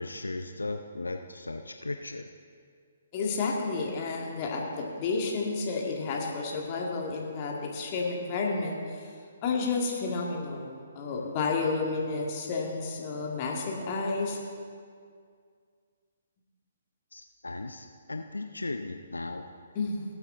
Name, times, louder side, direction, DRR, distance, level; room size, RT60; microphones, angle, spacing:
voice 1, 0.0-2.3 17.1-19.5, left 2 dB, 80° left, 6 dB, 0.5 m, -37 dB
voice 2, 3.1-9.1 9.4-14.4 19.7-20.0, left 4 dB, 35° left, -1 dB, 2.1 m, -31 dB
18.5 x 8.2 x 3.8 m, 2.1 s
figure-of-eight pair, 130°, 0 cm